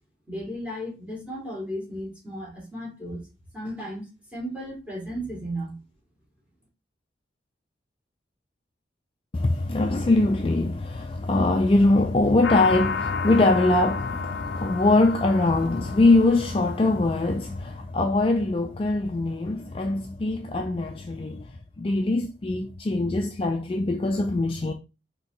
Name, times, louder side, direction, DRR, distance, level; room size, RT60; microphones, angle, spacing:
voice 1, 0.3-3.2 3.5-4.1 4.3-5.8, equal, 5° right, 2.0 m, -34 dB
voice 2, 9.3-21.5 21.8-24.7, left 2 dB, 30° left, 0.3 m, -22 dB
sound 1, 12.4-17.7, left 5 dB, 80° left, 0.5 m, -32 dB
4.1 x 2.9 x 3.8 m
head